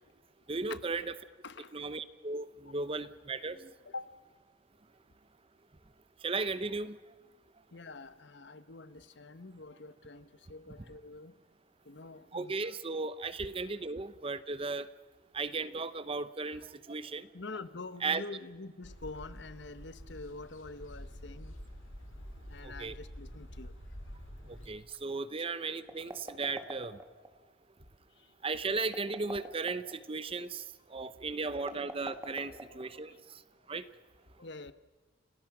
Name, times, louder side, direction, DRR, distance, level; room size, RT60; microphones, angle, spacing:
voice 1, 0.5-1.0 1.7-3.7 6.2-7.0 12.3-14.9 15.3-17.3 18.0-18.2 22.6-22.9 24.5-27.0 28.4-30.6 30.9-33.4 33.7-33.8, right 3 dB, 30° right, 0.7 m, -36 dB
voice 2, 1.4-1.9 3.8-4.2 7.7-11.3 11.9-12.7 17.3-21.5 22.5-23.7 30.4-30.5 31.7-31.8 32.7-33.2 34.4-34.7, left 3 dB, 60° left, 1.2 m, -46 dB
sound 1, 18.8-24.7, equal, 90° left, 3.5 m, -47 dB
sound 2, 25.9-27.3 28.8-30.0 31.6-33.1, right 1 dB, 15° right, 2.3 m, -44 dB
29.5 x 19.0 x 6.0 m
head